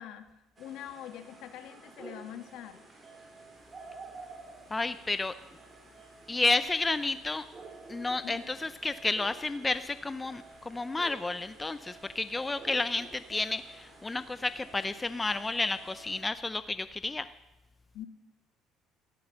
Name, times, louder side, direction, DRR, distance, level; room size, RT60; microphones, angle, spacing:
voice 1, 0.0-2.8 8.2-8.4 17.9-18.1, left 11 dB, 70° left, 8 dB, 1.7 m, -44 dB
sound 1, 0.6-16.2, right 3 dB, 25° right, 3.8 m, -51 dB
voice 2, 4.7-5.4 6.3-7.4 7.9-17.3, left 3 dB, 15° left, 13 dB, 0.5 m, -31 dB
14.5 x 13.0 x 6.5 m, 0.91 s
cardioid pair, 120°, 0 cm